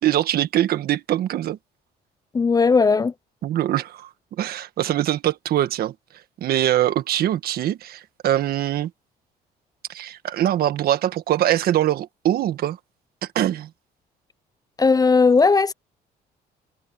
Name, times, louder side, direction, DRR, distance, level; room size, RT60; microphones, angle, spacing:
voice 1, 0.0-1.6 3.4-4.1 4.4-5.9 6.4-8.9 9.9-12.8 13.2-13.7, right 12 dB, 65° right, 1.6 m, -23 dB
voice 2, 2.3-3.1 14.8-15.7, left 4 dB, 20° left, 0.5 m, -17 dB
cardioid pair, 110°, 17 cm